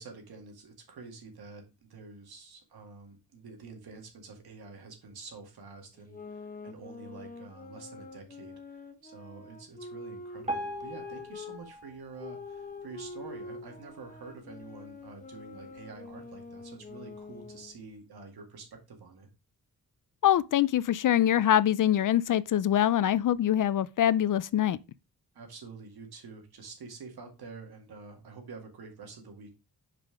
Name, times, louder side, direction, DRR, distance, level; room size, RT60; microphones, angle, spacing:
voice 1, 0.0-19.3 25.3-29.5, right 4 dB, 75° right, 2.1 m, -48 dB
sound 1, 6.0-11.6 12.2-17.8, left 3 dB, 20° left, 1.0 m, -45 dB
Piano, 10.5-13.6 14.1-14.2 14.5-14.6 15.4-15.5 16.0-16.1, right 1 dB, 20° right, 2.1 m, -40 dB
voice 2, 20.2-24.8, left 11 dB, 55° left, 0.4 m, -24 dB
5.6 x 5.0 x 4.8 m
wide cardioid pair, 115°, 38 cm